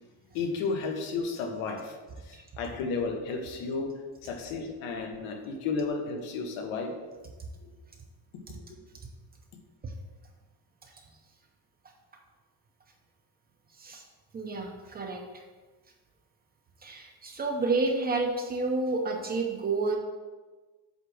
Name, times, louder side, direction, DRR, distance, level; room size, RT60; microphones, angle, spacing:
voice 1, 0.3-1.9 2.3-3.9 4.2-6.9, left 4 dB, 90° left, 3 dB, 1.4 m, -32 dB
voice 2, 14.3-15.4 16.8-20.0, right 3 dB, 20° right, 2 dB, 0.6 m, -30 dB
7.9 x 3.6 x 6.1 m, 1.3 s
cardioid pair, 175°, 47 cm